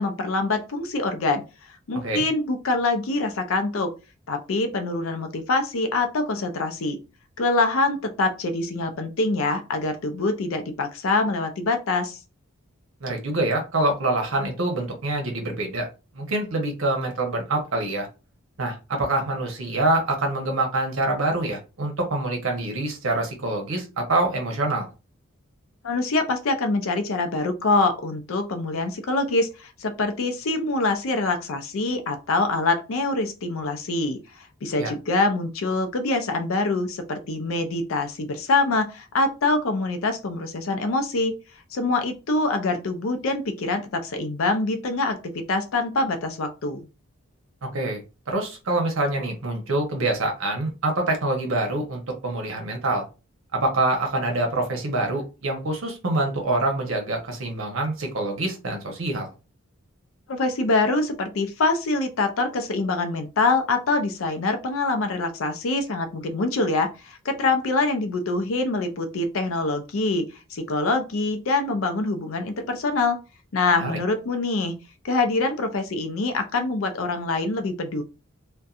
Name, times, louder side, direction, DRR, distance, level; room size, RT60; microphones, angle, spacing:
voice 1, 0.0-1.4 1.9-3.9 4.3-7.0 7.4-12.2 25.8-34.2 34.6-41.4 41.7-46.8 60.3-70.2 70.5-73.2 73.5-74.8 75.0-78.0, left 3 dB, 75° left, 7 dB, 0.5 m, -25 dB
voice 2, 13.0-15.9 16.1-18.1 18.6-24.9 34.8-34.9 47.7-48.0 48.3-53.0 53.5-59.3 73.8-73.9, right 2 dB, 70° right, 3 dB, 0.8 m, -25 dB
2.6 x 2.2 x 2.3 m, 0.30 s
head